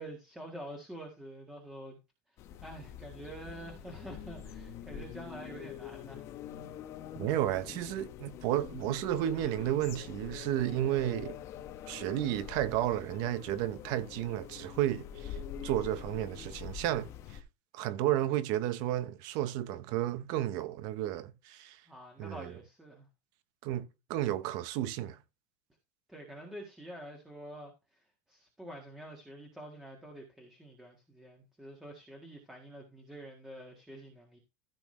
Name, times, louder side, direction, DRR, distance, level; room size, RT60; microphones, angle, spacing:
voice 1, 0.0-2.0 2.6-6.3 21.9-23.1 26.1-34.4, right 1 dB, 5° right, 1.7 m, -47 dB
sound 1, 2.4-17.4, left 9 dB, 35° left, 1.0 m, -45 dB
voice 2, 7.2-11.4 11.9-17.1 17.7-21.8 22.2-22.5 23.6-25.2, right 13 dB, 50° right, 1.0 m, -32 dB
15.0 x 6.1 x 3.3 m
cardioid pair, 175°, 9 cm